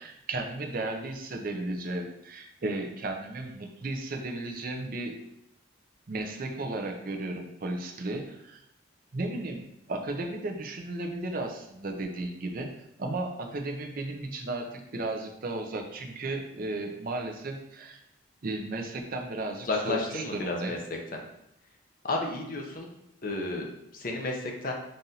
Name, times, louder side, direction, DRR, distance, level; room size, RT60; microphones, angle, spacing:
voice 1, 0.0-5.2 6.1-8.6 9.1-12.7 13.0-18.0 18.4-20.7, right 2 dB, 45° right, 2 dB, 0.5 m, -34 dB
voice 2, 19.6-20.8 21.1-21.2 22.0-22.9 23.2-24.7, left 2 dB, 45° left, 1 dB, 0.6 m, -32 dB
5.3 x 2.5 x 2.8 m, 0.80 s
head